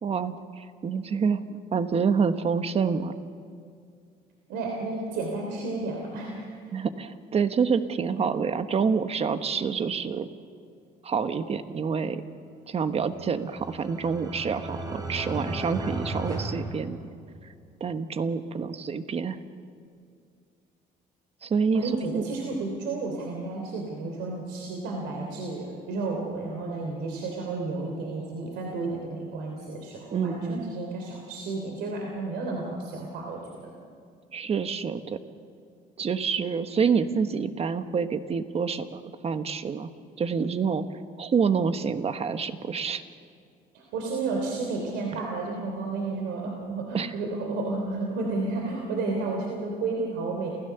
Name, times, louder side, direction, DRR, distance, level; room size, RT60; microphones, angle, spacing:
voice 1, 0.0-3.1 6.7-10.3 11.0-12.2 12.7-17.0 17.8-19.4 21.4-22.3 30.1-30.7 34.3-35.2 36.0-39.9 40.2-40.8 41.2-43.0 46.9-47.1, right 6 dB, 35° right, 10 dB, 1.2 m, -27 dB
voice 2, 4.5-6.5 21.7-33.8 43.7-50.5, right 3 dB, 90° right, 0 dB, 3.2 m, -32 dB
sound 1, 13.0-17.6, right 2 dB, 20° right, 3.5 m, -35 dB
28.0 x 16.0 x 6.9 m, 2.3 s
cardioid pair, 110°, 17 cm